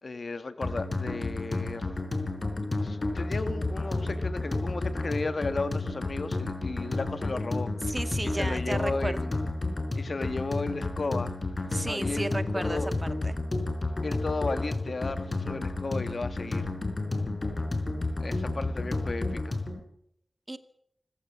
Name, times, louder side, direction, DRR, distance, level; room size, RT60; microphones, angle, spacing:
voice 1, 0.0-2.0 2.8-7.7 8.3-9.3 9.9-11.3 11.8-12.9 14.0-16.7 18.2-19.6, left 3 dB, 60° left, 10 dB, 1.8 m, -34 dB
sound 1, 0.6-19.8, left 2 dB, 40° left, 4.8 m, -31 dB
voice 2, 7.9-9.2 11.7-12.8 13.2-13.4 20.5-20.6, right 1 dB, 25° right, 10 dB, 1.9 m, -33 dB
25.5 x 15.5 x 7.4 m, 0.73 s
wide cardioid pair, 70°, 0 cm